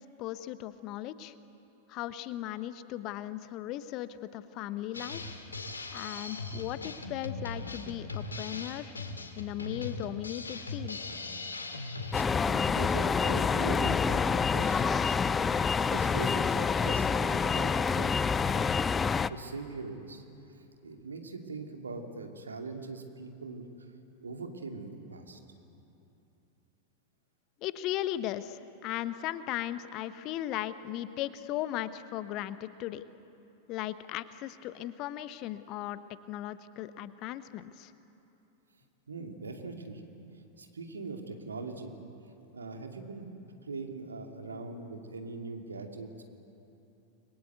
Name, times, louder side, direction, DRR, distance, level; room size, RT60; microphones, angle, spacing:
voice 1, 0.2-1.3 1.9-5.3 5.9-8.9 9.4-11.0 27.6-33.0 33.7-36.0 36.3-37.9, left 13 dB, 40° left, 13 dB, 1.0 m, -37 dB
Drum kit, 4.9-12.2, left 3 dB, 75° left, 2.3 m, -39 dB
voice 2, 12.0-15.2 15.9-18.1 18.5-18.6 19.3-20.2 20.6-23.7 24.2-25.4 39.1-40.0 40.6-41.9 42.5-43.2 43.6-46.2, right 3 dB, 75° right, 3 dB, 2.6 m, -41 dB
sound 1, 12.1-19.3, left 5 dB, 15° left, 0.5 m, -27 dB
30.0 x 22.5 x 8.2 m, 2.9 s
figure-of-eight pair, 90°, 0 cm